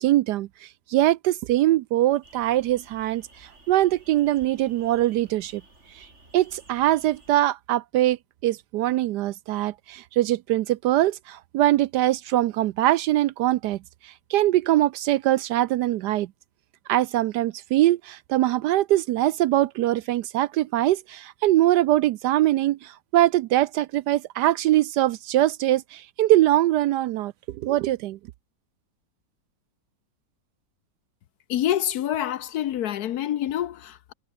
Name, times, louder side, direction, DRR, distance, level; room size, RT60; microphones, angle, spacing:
voice 1, 0.0-5.6 5.9-6.0 6.3-8.2 8.4-13.8 14.0-16.3 16.9-28.2, right 14 dB, 75° right, 1.1 m, -22 dB
sound 1, 2.2-7.4, right 2 dB, 40° right, 4.9 m, -54 dB
voice 2, 31.5-34.1, left 11 dB, 70° left, 1.2 m, -27 dB
omnidirectional pair, 1.9 m